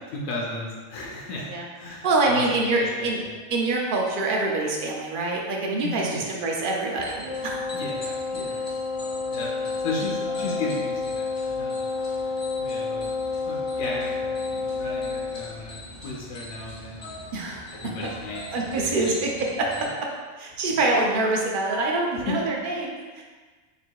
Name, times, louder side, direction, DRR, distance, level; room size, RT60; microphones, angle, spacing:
voice 1, 0.0-2.5 2.8-3.3 5.8-6.3 7.7-8.6 9.3-11.3 11.6-11.9 12.6-13.1 13.4-17.2 17.7-19.1 19.8-19.9 20.5-20.6 22.3-22.4, left 2 dB, 80° left, -3 dB, 1.0 m, -35 dB
voice 2, 1.5-3.2 3.5-7.6 17.3-17.6 18.5-19.3 19.6-20.1 20.4-23.2, right 2 dB, 55° right, -1 dB, 0.6 m, -25 dB
sound 1, 7.0-19.8, left 1 dB, 35° left, 0.4 m, -43 dB
Wind instrument woodwind instrument, 7.2-15.4, left 4 dB, 80° right, 1.0 m, -29 dB
3.0 x 2.7 x 4.5 m, 1.4 s
omnidirectional pair, 1.4 m